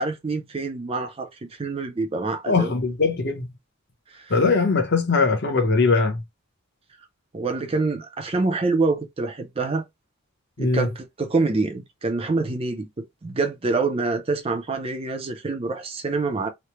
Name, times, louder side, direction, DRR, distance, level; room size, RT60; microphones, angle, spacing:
voice 1, 0.0-2.7 4.1-4.3 7.3-9.8 10.6-16.5, right 3 dB, 25° right, 0.4 m, -26 dB
voice 2, 2.5-3.5 4.3-6.2 10.6-10.9, left 4 dB, 50° left, 0.8 m, -21 dB
3.1 x 2.0 x 2.9 m
head